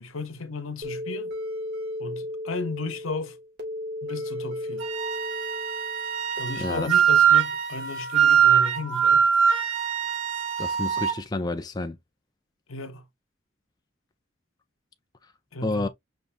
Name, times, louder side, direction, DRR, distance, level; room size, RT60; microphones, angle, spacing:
voice 1, 0.0-1.3 2.0-3.4 4.0-4.9 6.4-9.2 12.7-13.0 15.5-15.9, left 3 dB, 90° left, 0.9 m, -34 dB
sound 1, 0.8-6.4, left 1 dB, 50° right, 1.9 m, -35 dB
Wind instrument woodwind instrument, 4.8-11.2, right 8 dB, 70° right, 1.0 m, -22 dB
voice 2, 6.6-6.9 10.6-12.0 15.6-15.9, left 2 dB, 20° left, 0.4 m, -29 dB
5.3 x 3.4 x 2.5 m
head